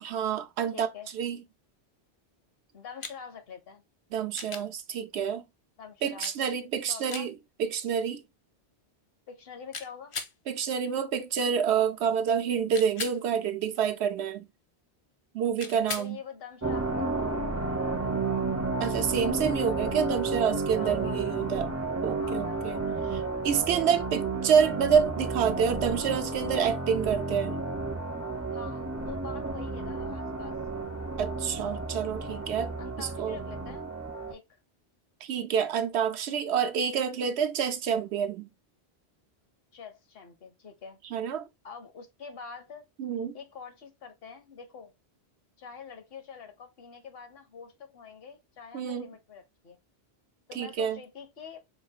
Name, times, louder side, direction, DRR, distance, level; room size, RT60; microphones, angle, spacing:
voice 1, 0.0-0.9 1.1-1.4 4.1-5.4 6.0-7.3 7.6-8.2 10.5-14.5 15.3-16.2 18.8-21.7 22.0-22.8 23.1-27.6 31.2-33.4 35.2-38.5 41.1-41.4 43.0-43.3 48.7-49.1 50.5-51.0, right 7 dB, 85° right, 0.9 m, -28 dB
voice 2, 0.7-1.1 2.7-3.8 5.8-6.3 6.9-7.3 9.3-10.1 16.0-17.3 20.7-21.2 22.2-22.8 28.5-30.6 32.8-33.8 34.3-34.6 39.7-41.0 41.6-42.9 43.3-44.9 45.6-49.8 50.5-51.6, left 6 dB, 65° left, 1.0 m, -45 dB
sound 1, 3.0-3.2 4.3-4.7 6.2-6.4 7.1-7.3 9.7-10.3 12.7-13.2 15.6-16.1 18.4-18.5, left 5 dB, 45° left, 0.4 m, -37 dB
sound 2, 16.6-34.3, right 3 dB, 20° right, 0.4 m, -32 dB
4.5 x 2.4 x 2.7 m
omnidirectional pair, 1.1 m